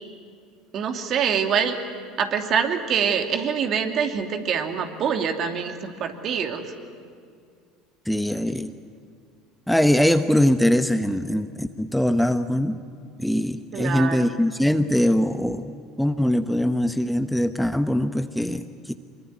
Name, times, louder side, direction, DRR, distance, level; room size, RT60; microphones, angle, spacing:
voice 1, 0.7-1.8 2.2-6.7 13.7-14.3, right 7 dB, 50° right, 5 dB, 2.7 m, -25 dB
voice 2, 8.1-8.7 9.7-12.8 13.2-18.9, left 1 dB, ahead, 9 dB, 1.0 m, -22 dB
24.5 x 23.0 x 9.7 m, 2.2 s
hypercardioid pair, 80°, 0 cm